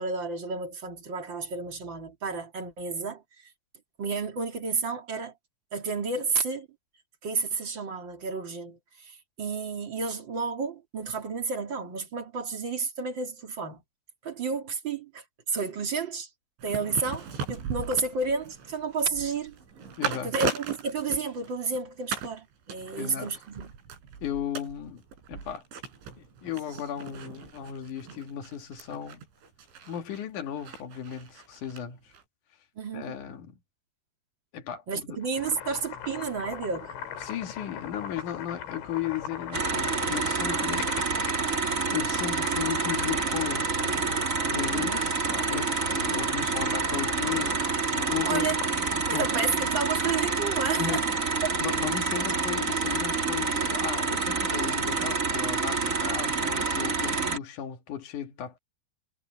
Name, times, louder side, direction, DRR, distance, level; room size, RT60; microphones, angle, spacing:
voice 1, 0.0-3.2 4.0-5.3 5.7-6.7 7.2-13.8 14.2-16.3 16.6-19.6 20.2-23.7 32.8-33.1 34.9-36.9 44.7-45.0 48.3-48.6 49.1-51.0 51.4-51.5, right 4 dB, 35° right, 2.4 m, -31 dB
sound 1, 16.6-21.8 22.1-22.4 22.7-31.8 32.1-32.2, right 5 dB, 90° right, 7.3 m, -38 dB
voice 2, 20.0-20.3 23.0-23.3 24.2-25.0 25.3-25.6 26.2-29.2 29.9-32.1 32.9-33.6 34.5-35.2 37.2-40.9 41.9-48.5 49.1-49.4 50.8-58.6, left 10 dB, 55° left, 2.5 m, -35 dB
Boiling, 35.2-49.2, left 8 dB, 80° left, 5.4 m, -41 dB
sound 2, 39.5-57.4, right 4 dB, 55° right, 0.9 m, -28 dB
omnidirectional pair, 5.2 m